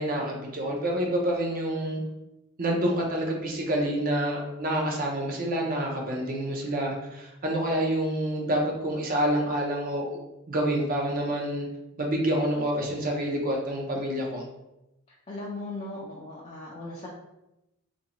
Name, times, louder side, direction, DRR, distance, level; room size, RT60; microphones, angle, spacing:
voice 1, 0.0-2.0 2.6-10.1 10.5-11.7 12.0-14.4, right 1 dB, 40° right, 0 dB, 0.6 m, -27 dB
voice 2, 15.3-17.1, left 2 dB, 25° left, -5 dB, 0.4 m, -37 dB
3.1 x 2.6 x 2.9 m, 0.93 s
head